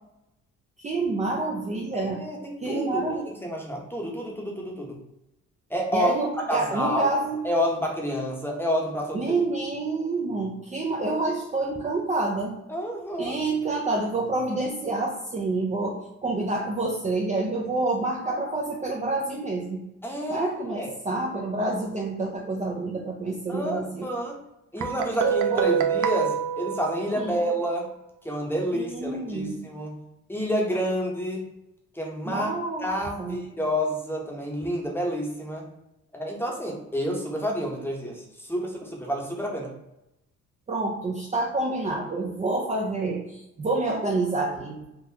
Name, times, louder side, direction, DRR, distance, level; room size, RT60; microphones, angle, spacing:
voice 1, 0.8-2.2 2.6-3.2 5.9-7.4 9.1-12.6 13.2-19.8 20.3-24.1 25.2-25.8 27.2-27.4 28.7-29.6 32.3-32.9 33.2-33.4 40.7-44.9, right 2 dB, 25° right, -2 dB, 0.5 m, -28 dB
voice 2, 1.9-5.0 5.7-6.1 6.5-7.1 7.4-9.2 12.7-13.4 20.0-20.9 23.5-24.4 24.7-27.9 28.2-30.0 30.3-31.5 31.9-32.5 32.8-35.7 36.1-39.7, equal, 5° left, -1 dB, 0.9 m, -29 dB
Guitar, 24.8-27.6, right 8 dB, 80° right, 0.5 m, -26 dB
3.7 x 2.5 x 2.8 m, 0.88 s
cardioid pair, 90°, 30 cm